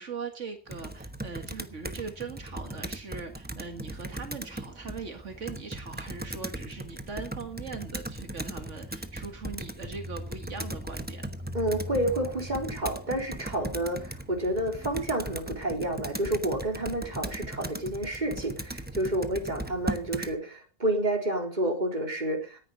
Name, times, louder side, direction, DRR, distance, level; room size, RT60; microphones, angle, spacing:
voice 1, 0.0-11.3, right 5 dB, 80° right, 5 dB, 2.2 m, -40 dB
Computer keyboard, 0.7-20.3, right 1 dB, 10° right, 1.0 m, -38 dB
voice 2, 11.5-22.6, right 1 dB, 35° right, 2 dB, 4.1 m, -30 dB
18.5 x 10.5 x 5.3 m, 0.37 s
omnidirectional pair, 1.2 m